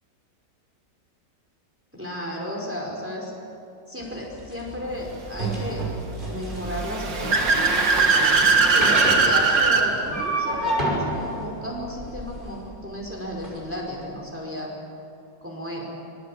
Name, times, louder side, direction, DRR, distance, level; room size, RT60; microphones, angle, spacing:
voice 1, 1.9-3.3 3.9-5.8 6.3-7.8 8.6-14.7 15.4-15.9, left 1 dB, 5° right, -2 dB, 5.1 m, -33 dB
sound 1, 4.0-13.5, right 1 dB, 25° right, 5.8 m, -30 dB
Car / Accelerating revving vroom, 6.7-9.9, right 4 dB, 90° right, 2.8 m, -19 dB
25.5 x 22.5 x 8.8 m, 2.5 s
omnidirectional pair, 2.0 m